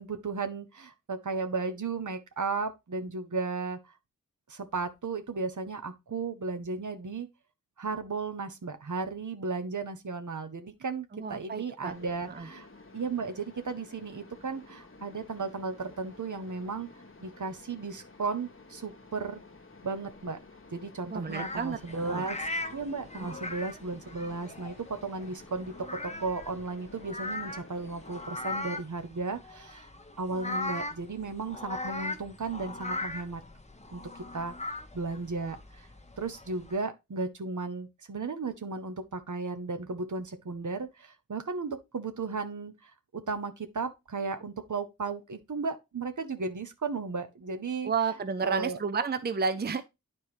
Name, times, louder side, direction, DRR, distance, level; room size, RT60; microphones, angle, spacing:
voice 1, 0.0-3.8 4.5-7.3 7.8-12.7 12.9-16.9 17.2-19.4 19.8-20.4 20.7-22.4 22.7-24.8 25.0-25.7 26.0-29.9 30.2-33.4 33.9-34.0 34.3-34.5 34.9-35.9 36.2-47.9 48.4-48.8, right 4 dB, 65° right, 0.9 m, -35 dB
voice 2, 11.1-11.9 12.3-12.5 21.1-22.2 23.2-23.3 47.8-49.8, right 5 dB, 30° right, 0.5 m, -31 dB
Mechanisms, 11.9-28.6, left 3 dB, 40° left, 1.2 m, -52 dB
sound 1, 21.3-36.8, left 2 dB, 20° left, 1.0 m, -39 dB
9.6 x 4.3 x 3.2 m
wide cardioid pair, 50°, 33 cm